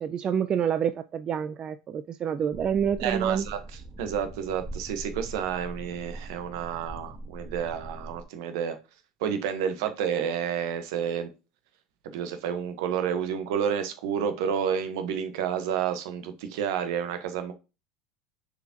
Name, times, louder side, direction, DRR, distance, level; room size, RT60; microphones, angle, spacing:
voice 1, 0.0-3.5, right 8 dB, 35° right, 0.5 m, -27 dB
sound 1, 2.5-8.2, right 2 dB, 15° right, 1.1 m, -42 dB
voice 2, 3.0-3.6 4.0-8.8 9.2-11.3 12.0-17.5, right 8 dB, 70° right, 1.2 m, -30 dB
6.6 x 5.0 x 3.0 m
hypercardioid pair, 90°, 2 cm